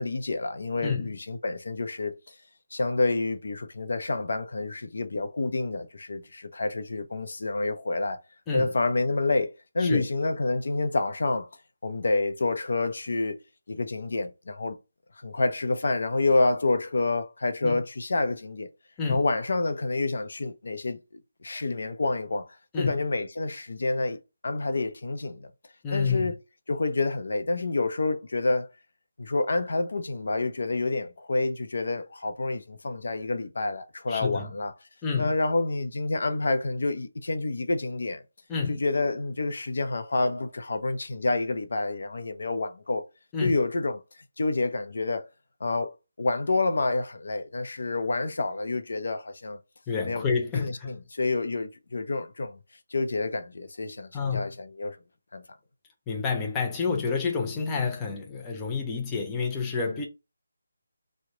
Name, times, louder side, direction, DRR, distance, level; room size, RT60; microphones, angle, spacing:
voice 1, 0.0-2.3 2.7-8.2 8.5-11.5 11.8-13.4 13.7-14.8 15.2-18.7 19.1-21.0 21.4-24.2 24.4-25.5 25.9-26.3 26.7-28.7 29.2-34.7 35.2-38.2 38.7-43.0 43.4-44.0 44.4-45.2 45.6-49.6 50.0-50.2 50.5-52.6 52.9-55.0 55.3-55.4, left 2 dB, 65° left, 0.6 m, -28 dB
voice 2, 0.8-1.1 8.5-8.7 9.8-10.1 17.6-17.8 19.0-19.3 22.7-23.0 25.8-26.3 34.1-34.5 35.0-35.3 38.5-38.8 43.3-43.6 49.9-51.0 54.1-54.5 56.1-60.0, left 5 dB, 10° left, 0.4 m, -29 dB
3.0 x 2.1 x 3.7 m
figure-of-eight pair, 170°, 0 cm